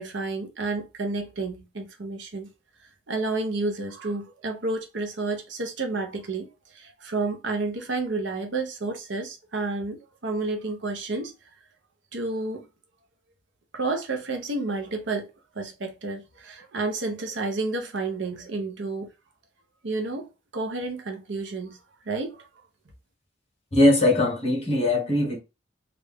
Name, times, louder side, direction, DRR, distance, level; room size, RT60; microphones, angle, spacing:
voice 1, 0.0-2.5 3.1-6.5 6.7-11.3 12.1-12.6 13.7-15.3 15.5-19.1 19.8-20.3 20.5-21.8 22.1-22.5, right 3 dB, 65° right, 0.8 m, -30 dB
voice 2, 23.7-25.4, left 1 dB, 35° left, 1.3 m, -20 dB
3.3 x 2.5 x 3.4 m
head